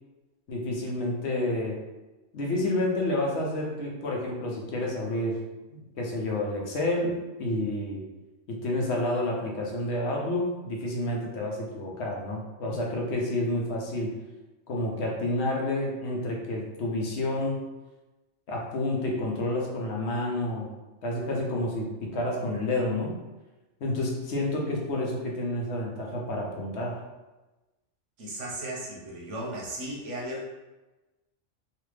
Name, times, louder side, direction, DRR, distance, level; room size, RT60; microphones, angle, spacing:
voice 1, 0.5-1.8 2.3-5.4 5.7-8.0 8.5-14.1 14.7-17.7 18.5-20.7 21.0-23.2 23.8-27.0, left 1 dB, 70° left, -1 dB, 0.9 m, -29 dB
voice 2, 28.2-30.5, right 1 dB, 80° right, -4 dB, 1.3 m, -36 dB
3.3 x 2.4 x 3.1 m, 1.1 s
omnidirectional pair, 1.3 m